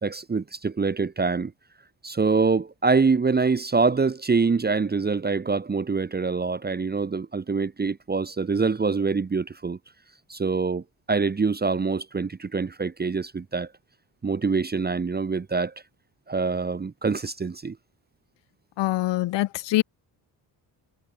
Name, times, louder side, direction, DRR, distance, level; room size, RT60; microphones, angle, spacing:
voice 1, 0.0-1.5 2.0-9.8 10.3-13.7 14.2-15.7 16.3-17.8, right 4 dB, 20° right, 1.1 m, -25 dB
voice 2, 18.8-19.8, left 16 dB, 65° left, 0.8 m, -24 dB
cardioid pair, 125°, 46 cm